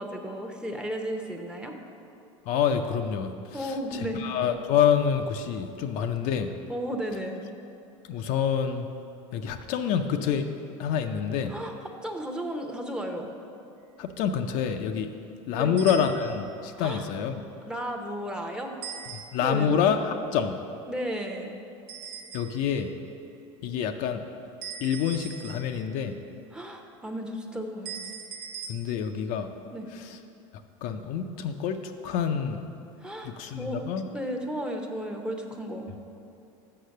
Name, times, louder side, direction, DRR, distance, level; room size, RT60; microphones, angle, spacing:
voice 1, 0.0-1.7 3.5-4.2 6.7-7.4 11.5-11.7 12.0-13.3 15.5-15.7 16.8-17.1 17.7-18.7 19.4-19.8 20.9-21.5 26.5-28.1 29.7-29.9 33.0-33.8 34.1-35.9, equal, 5° right, 2 dB, 0.8 m, -34 dB
voice 2, 2.5-6.5 8.0-8.9 9.3-10.5 10.8-11.5 14.0-15.1 15.5-17.4 19.1-20.6 22.3-22.9 23.6-24.2 24.8-26.2 28.7-29.5 29.9-30.2 30.8-32.7 33.2-34.1, left 7 dB, 55° left, 6 dB, 0.5 m, -27 dB
sound 1, 15.8-16.6 18.8-19.7 21.9-22.8 24.6-26.0 27.8-28.7, right 7 dB, 55° right, 0.9 m, -41 dB
6.7 x 5.5 x 6.5 m, 2.7 s
supercardioid pair, 105°, 16 cm